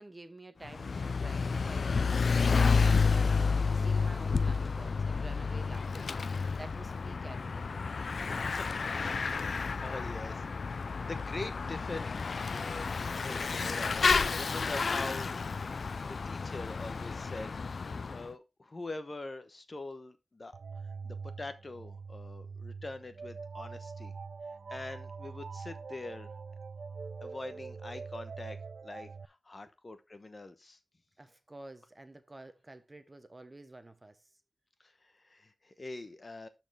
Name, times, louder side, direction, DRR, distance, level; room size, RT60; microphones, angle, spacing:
voice 1, 0.0-6.1 6.6-7.8 31.2-34.3, right 2 dB, 25° right, 1.0 m, -50 dB
Bicycle / Mechanisms, 0.7-18.3, left 5 dB, 70° left, 0.3 m, -30 dB
voice 2, 8.5-14.0 14.3-15.3 15.6-17.6 18.1-20.6 21.0-24.1 24.7-26.3 27.2-28.6 28.8-30.8 34.8-36.5, left 2 dB, 40° left, 0.9 m, -44 dB
sound 1, 20.5-29.2, right 5 dB, 75° right, 0.4 m, -44 dB
12.0 x 4.4 x 3.4 m
wide cardioid pair, 95°, 0 cm